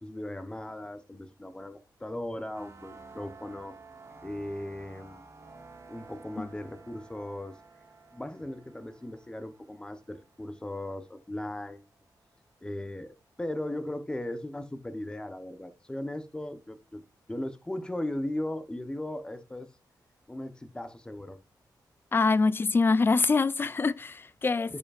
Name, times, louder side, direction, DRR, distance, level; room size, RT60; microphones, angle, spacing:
voice 1, 0.0-3.7 4.2-5.3 5.9-7.6 8.1-11.8 12.6-17.0 17.3-19.7 20.3-21.4 24.7-24.8, left 1 dB, 10° left, 0.9 m, -37 dB
sound 1, 2.5-11.2, right 3 dB, 40° right, 1.3 m, -52 dB
voice 2, 22.1-24.8, left 4 dB, 30° left, 0.4 m, -25 dB
15.0 x 5.1 x 2.5 m
wide cardioid pair, 125°, 8 cm